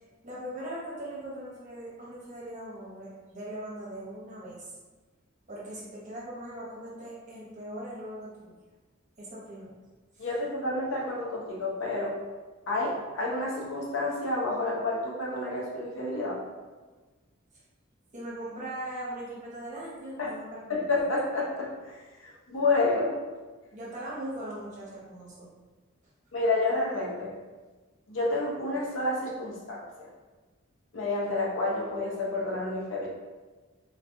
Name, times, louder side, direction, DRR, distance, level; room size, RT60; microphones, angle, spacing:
voice 1, 0.2-4.7 5.5-8.5 9.2-9.7 10.1-10.3 18.1-20.9 23.7-25.5, right 1 dB, 40° right, -7 dB, 1.1 m, -40 dB
voice 2, 10.2-12.2 12.7-16.4 20.2-20.3 20.7-23.2 26.3-27.3 28.1-30.1 30.9-33.1, left 2 dB, 70° left, -2 dB, 0.7 m, -29 dB
3.8 x 2.5 x 2.6 m, 1.3 s
head